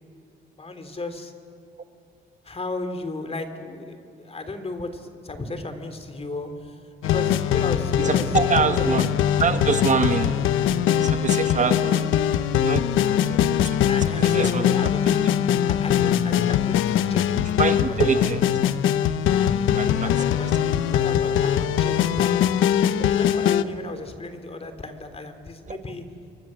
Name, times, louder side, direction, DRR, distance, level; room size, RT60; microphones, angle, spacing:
voice 1, 0.6-1.3 2.4-8.9 13.9-15.2 15.7-17.4 18.0-18.4 19.9-22.4 23.0-26.0, left 2 dB, 30° left, 7 dB, 3.1 m, -35 dB
sound 1, 7.0-23.6, left 10 dB, 85° left, 0.9 m, -22 dB
voice 2, 8.0-9.1 9.4-10.6 11.0-12.9 13.3-15.1 15.5-15.6 17.3-18.4 19.4-20.1 20.4-20.5 25.7-25.8, right 5 dB, 40° right, 8 dB, 1.4 m, -26 dB
29.0 x 23.0 x 7.6 m, 2.7 s
cardioid pair, 90°, 20 cm